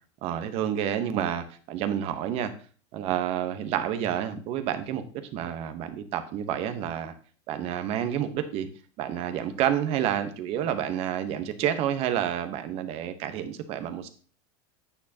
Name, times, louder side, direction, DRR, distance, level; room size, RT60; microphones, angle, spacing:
voice 1, 0.2-2.5 2.9-7.1 7.5-8.7 9.0-14.1, right 10 dB, 45° right, 9 dB, 1.1 m, -29 dB
9.2 x 6.4 x 2.9 m, 0.41 s
supercardioid pair, 140°, 14 cm